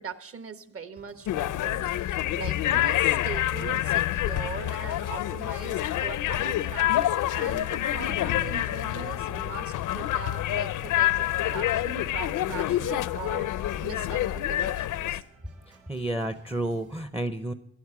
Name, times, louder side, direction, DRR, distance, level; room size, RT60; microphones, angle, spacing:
voice 1, 0.0-11.1 11.4-15.2, right 6 dB, 45° right, 10 dB, 1.3 m, -40 dB
Organ, 1.0-17.0, right 3 dB, 85° right, 3.5 m, -56 dB
sound 1, 1.3-15.2, left 13 dB, 80° left, 0.6 m, -27 dB
voice 2, 15.7-17.5, right 1 dB, 5° right, 10 dB, 0.6 m, -31 dB
18.0 x 12.0 x 4.7 m, 0.71 s
cardioid pair, 155°, 30 cm